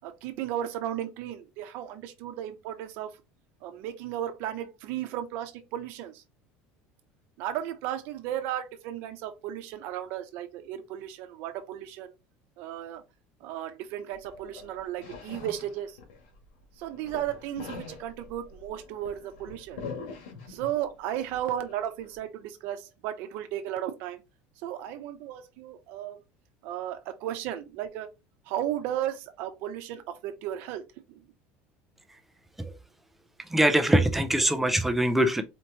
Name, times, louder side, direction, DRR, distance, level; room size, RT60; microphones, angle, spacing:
voice 1, 0.0-3.1 3.6-6.2 7.4-12.1 12.6-13.0 13.4-16.0 16.8-19.8 20.5-24.2 24.6-26.2 26.6-28.1 28.5-30.8 31.1-31.2, right 11 dB, 50° right, 0.7 m, -34 dB
sound 1, 14.1-16.5 16.8-20.9 21.3-22.2, left 4 dB, 75° left, 1.8 m, -44 dB
voice 2, 33.5-35.4, right 1 dB, 5° right, 0.4 m, -22 dB
4.3 x 3.1 x 2.8 m
cardioid pair, 180°, 4 cm